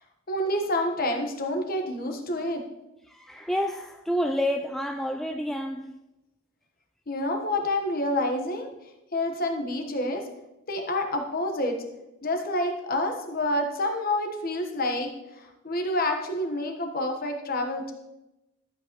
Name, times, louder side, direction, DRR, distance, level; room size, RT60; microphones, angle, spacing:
voice 1, 0.3-2.7 7.1-8.7 9.1-10.2 10.7-11.7 12.2-15.1 15.4-17.9, left 1 dB, 45° left, 1.3 m, -28 dB
voice 2, 3.1-5.9, equal, ahead, 0.3 m, -29 dB
12.0 x 8.4 x 3.1 m
head